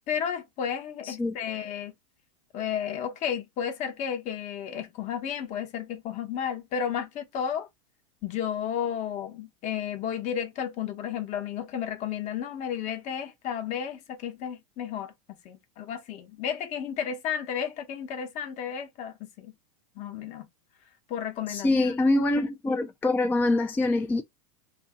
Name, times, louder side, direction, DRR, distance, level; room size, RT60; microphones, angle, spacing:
voice 1, 0.1-1.9 2.5-7.7 8.2-15.1 15.4-19.5 20.0-20.5 21.1-21.9, left 8 dB, 40° left, 1.0 m, -32 dB
voice 2, 21.5-24.2, left 2 dB, 10° left, 0.4 m, -24 dB
2.7 x 2.7 x 3.6 m
supercardioid pair, 135°, 19 cm